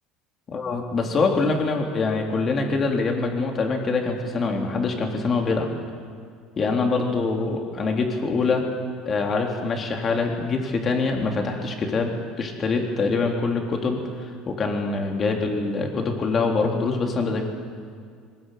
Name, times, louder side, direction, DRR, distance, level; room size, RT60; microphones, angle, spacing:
voice 1, 0.5-5.7 6.6-8.6 9.0-17.4, left 3 dB, 30° left, 2 dB, 3.6 m, -24 dB
22.0 x 21.0 x 9.4 m, 2.1 s
cardioid pair, 135°, 0 cm